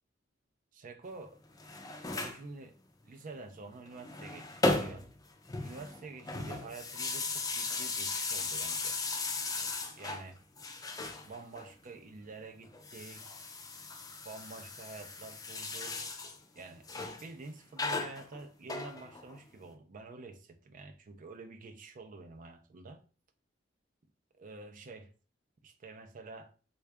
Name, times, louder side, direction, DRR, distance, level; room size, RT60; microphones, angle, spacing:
voice 1, 0.7-1.4 2.1-2.8 3.0-5.1 5.6-9.0 10.0-10.4 11.2-13.4 14.2-16.1 16.6-16.9 17.2-23.0 24.4-25.1 25.6-26.5, right 3 dB, 45° right, 0.4 m, -48 dB
sound 1, 1.4-2.4 3.9-5.2 5.5-10.3 10.6-11.7 12.7-16.4 16.9-17.3 17.8-19.4, left 3 dB, 20° left, 0.5 m, -36 dB
3.6 x 2.3 x 3.3 m
head